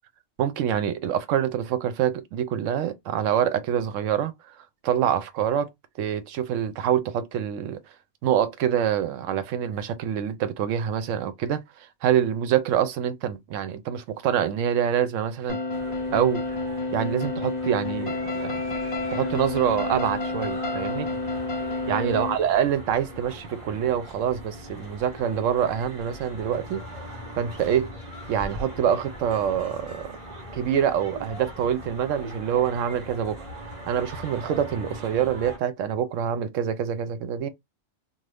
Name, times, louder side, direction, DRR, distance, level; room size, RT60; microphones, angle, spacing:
voice 1, 0.4-4.3 4.8-5.7 6.0-7.8 8.2-11.6 12.0-15.6 16.1-16.4 16.9-18.6 19.1-21.1 21.9-26.8 27.4-27.9 28.3-30.1 30.5-33.4 33.9-37.5, right 9 dB, 85° right, 1.0 m, -25 dB
sound 1, 15.5-22.3, left 2 dB, 45° left, 0.5 m, -29 dB
sound 2, 15.7-35.6, equal, 35° right, 1.2 m, -41 dB
2.5 x 2.4 x 3.3 m
omnidirectional pair, 1.3 m